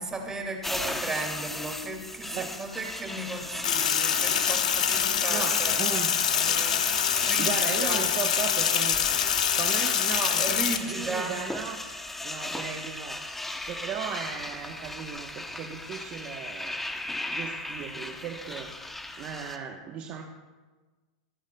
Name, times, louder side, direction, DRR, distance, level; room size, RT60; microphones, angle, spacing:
voice 1, 0.0-5.8 6.1-6.8 7.2-8.0 10.4-11.4, right 2 dB, 15° right, 1 dB, 2.2 m, -35 dB
sound 1, 0.6-19.6, left 2 dB, 5° left, 0.8 m, -36 dB
Sink (filling or washing), 3.6-10.8, left 9 dB, 90° left, 1.0 m, -25 dB
voice 2, 5.3-6.1 7.4-9.0 9.5-10.4 10.9-11.8 12.2-13.2 13.7-16.8 17.3-18.7 19.2-20.2, right 7 dB, 40° right, 2 dB, 1.0 m, -36 dB
24.5 x 9.1 x 2.3 m, 1.3 s
supercardioid pair, 135°, 4 cm